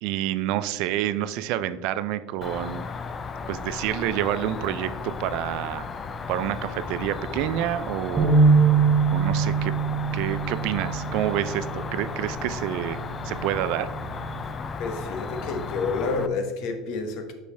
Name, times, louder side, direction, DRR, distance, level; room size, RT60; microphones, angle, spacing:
voice 1, 0.0-2.9 3.5-5.9 6.3-8.4 9.1-9.7 10.1-13.0 13.2-13.9, right 12 dB, 65° right, 13 dB, 0.3 m, -28 dB
Cricket, 2.4-16.3, left 5 dB, 25° left, 0.4 m, -35 dB
sound 1, 8.2-14.4, right 5 dB, 10° right, 0.9 m, -24 dB
voice 2, 14.8-17.3, left 4 dB, 60° left, 6 dB, 0.9 m, -29 dB
6.3 x 5.3 x 3.3 m, 1.2 s
cardioid pair, 145°, 0 cm